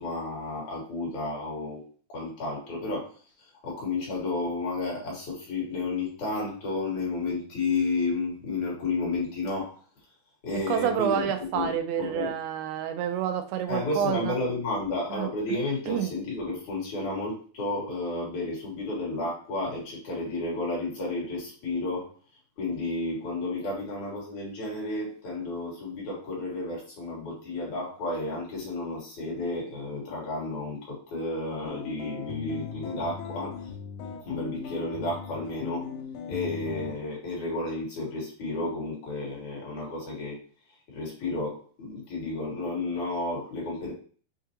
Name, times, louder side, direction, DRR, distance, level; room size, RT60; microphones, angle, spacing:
voice 1, 0.0-1.8 2.1-9.8 10.4-11.3 11.5-12.3 13.7-22.1 22.6-33.7 34.2-35.9 36.3-40.4 40.9-43.9, left 2 dB, 60° left, -4 dB, 2.9 m, -32 dB
voice 2, 10.7-14.4 15.1-15.6 15.9-16.1, right 8 dB, 85° right, 7 dB, 2.4 m, -29 dB
sound 1, 31.7-37.0, left 6 dB, 85° left, 1.8 m, -38 dB
6.6 x 2.4 x 2.8 m, 0.42 s
omnidirectional pair, 4.1 m